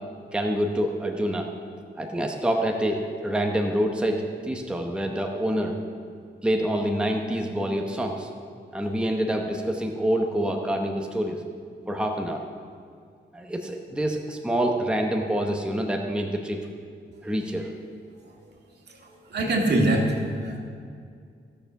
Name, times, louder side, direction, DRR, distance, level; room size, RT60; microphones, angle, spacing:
voice 1, 0.3-1.5 2.0-5.8 6.4-8.3 8.7-11.4 11.9-12.4 13.3-16.7 17.2-17.7, right 1 dB, 5° right, 2 dB, 0.8 m, -26 dB
voice 2, 19.0-20.6, right 1 dB, 65° right, 0 dB, 2.0 m, -24 dB
15.0 x 6.9 x 5.9 m, 2.2 s
cardioid pair, 110°, 19 cm